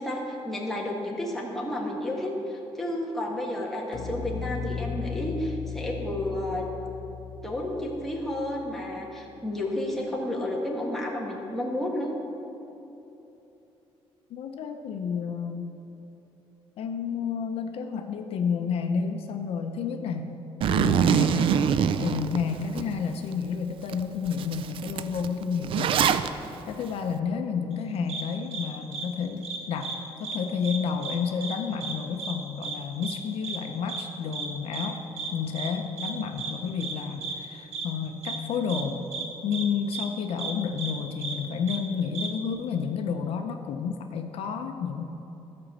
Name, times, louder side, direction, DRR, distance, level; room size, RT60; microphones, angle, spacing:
voice 1, 0.0-6.6 7.4-12.1, left 1 dB, 5° left, -3 dB, 1.5 m, -31 dB
sound 1, 3.9-9.2, left 7 dB, 45° left, 0.9 m, -36 dB
voice 2, 14.3-15.7 16.8-20.4 20.7-29.9 30.2-35.0 35.3-39.0 39.4-45.0, left 6 dB, 70° left, 5 dB, 0.7 m, -30 dB
Zipper (clothing), 20.6-22.8 23.3-23.4 23.9-24.0 24.3-26.3, right 8 dB, 55° right, 0.4 m, -24 dB
sound 2, 28.1-28.2 28.5-28.6 28.9-29.0 29.4-30.0 30.2-30.4 30.6-31.2 31.4-31.5 31.8-31.9 32.2-32.3 32.6-32.8 33.0-33.2 33.4-33.6 33.9-34.0 34.3-34.5 34.7-34.9 35.2-35.3 35.6-35.7 36.0-36.1 36.4-36.5 36.8-36.9 37.2-37.3 37.7-37.9 38.2-38.4 38.7-38.8 39.1-39.2 39.5-39.7 39.9-40.1 40.4-40.5 40.8-40.9 41.2-41.3 41.7-41.8 42.1-42.3, right 5 dB, 85° right, 1.3 m, -33 dB
13.0 x 5.2 x 7.3 m, 3.0 s
cardioid pair, 150°, 11 cm